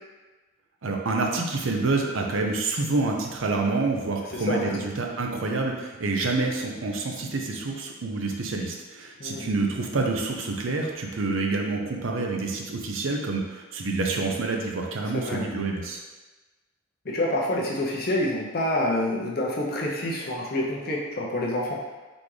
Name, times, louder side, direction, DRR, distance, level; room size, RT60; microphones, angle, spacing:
voice 1, 0.8-16.0, right 3 dB, 70° right, 1 dB, 0.6 m, -27 dB
voice 2, 4.3-4.9 9.2-9.5 15.0-15.5 17.0-21.8, left 1 dB, 45° left, -2 dB, 0.7 m, -27 dB
4.1 x 3.5 x 3.2 m, 1.2 s
head